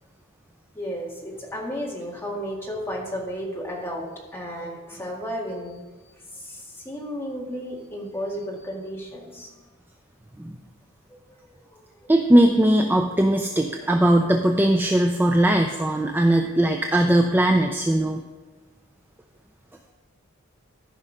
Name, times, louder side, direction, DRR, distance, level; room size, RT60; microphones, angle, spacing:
voice 1, 0.8-4.1 4.3-5.8 6.3-9.5 11.3-12.1 13.8-14.2, equal, 10° left, -3 dB, 1.9 m, -33 dB
voice 2, 12.1-18.2, right 1 dB, 10° right, 4 dB, 0.4 m, -19 dB
14.0 x 5.5 x 5.0 m, 1.3 s
head